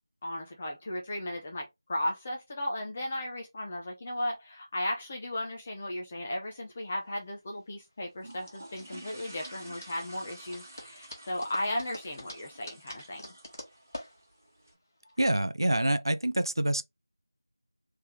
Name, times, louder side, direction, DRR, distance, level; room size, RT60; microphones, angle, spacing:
voice 1, 0.2-13.3, left 1 dB, 10° left, 0.6 m, -35 dB
sound 1, 6.5-15.4, left 1 dB, 40° left, 1.3 m, -47 dB
sound 2, 8.2-14.7, right 1 dB, 30° right, 1.4 m, -50 dB
voice 2, 15.2-16.8, right 1 dB, 80° right, 0.5 m, -26 dB
3.4 x 3.3 x 2.9 m
figure-of-eight pair, 175°, 2 cm